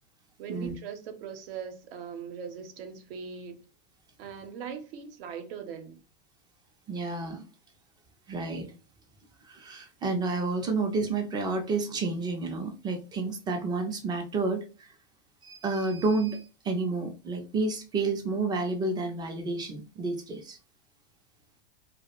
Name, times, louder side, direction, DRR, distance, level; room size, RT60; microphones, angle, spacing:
voice 1, 0.4-3.6 4.2-6.0, right 7 dB, 70° right, 0.6 m, -40 dB
voice 2, 6.9-7.4 8.3-8.7 9.4-14.9 15.4-20.6, right 3 dB, 15° right, 0.3 m, -30 dB
2.3 x 2.0 x 2.9 m
supercardioid pair, 125°, 30 cm